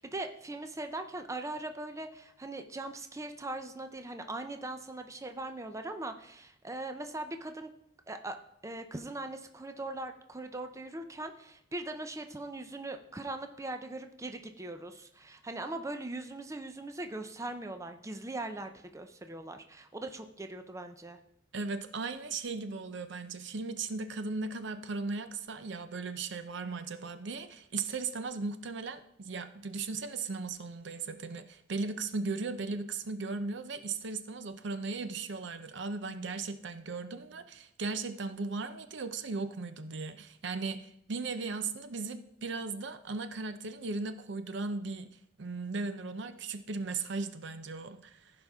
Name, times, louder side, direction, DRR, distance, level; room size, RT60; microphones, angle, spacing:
voice 1, 0.0-7.7 8.1-8.4 8.6-21.2, right 2 dB, 15° right, 7 dB, 0.6 m, -40 dB
voice 2, 21.5-45.1 45.4-48.3, right 4 dB, 65° right, 10 dB, 0.6 m, -37 dB
15.5 x 5.2 x 3.6 m, 0.74 s
head